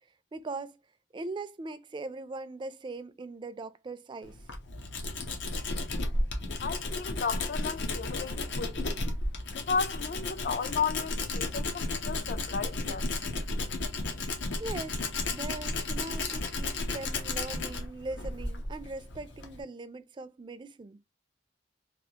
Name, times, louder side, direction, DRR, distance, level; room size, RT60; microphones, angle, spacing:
voice 1, 0.3-0.8 1.1-4.4 14.6-15.0 15.3-21.0, right 3 dB, 25° right, 0.3 m, -40 dB
Tools, 4.2-19.6, left 2 dB, 85° left, 0.8 m, -33 dB
voice 2, 6.6-9.0 9.5-13.1, left 5 dB, 55° left, 0.4 m, -34 dB
3.3 x 2.4 x 2.8 m
head